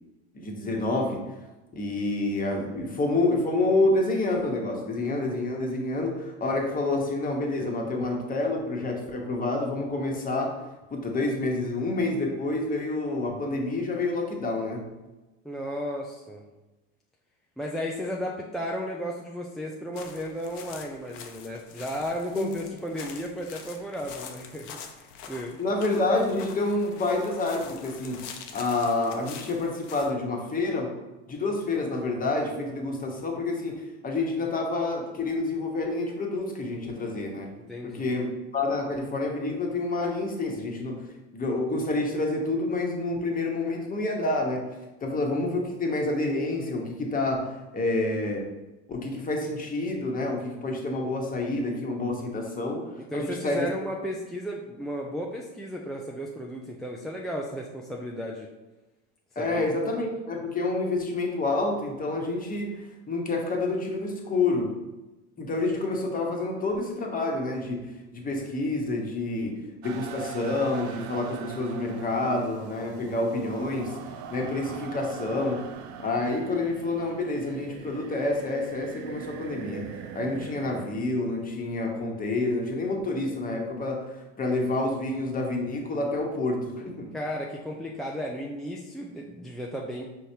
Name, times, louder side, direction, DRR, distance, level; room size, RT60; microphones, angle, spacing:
voice 1, 0.3-1.2 1.7-10.6 10.9-14.8 22.3-22.5 25.6-28.3 28.5-30.9 31.3-33.7 34.0-37.5 37.8-38.3 38.5-41.1 41.3-44.7 45.0-48.4 48.9-53.7 59.3-64.8 65.4-74.0 74.3-75.6 76.0-87.1, left 2 dB, 25° left, 1 dB, 1.1 m, -28 dB
voice 2, 15.4-16.5 17.6-25.6 37.6-38.2 53.1-58.5 59.4-59.6 87.1-90.0, equal, ahead, -2 dB, 0.4 m, -34 dB
sound 1, 19.9-30.1, left 7 dB, 60° left, 0.7 m, -45 dB
sound 2, 69.8-80.9, right 8 dB, 55° right, 0.6 m, -41 dB
5.6 x 3.2 x 2.8 m, 1.1 s
hypercardioid pair, 85°, 34 cm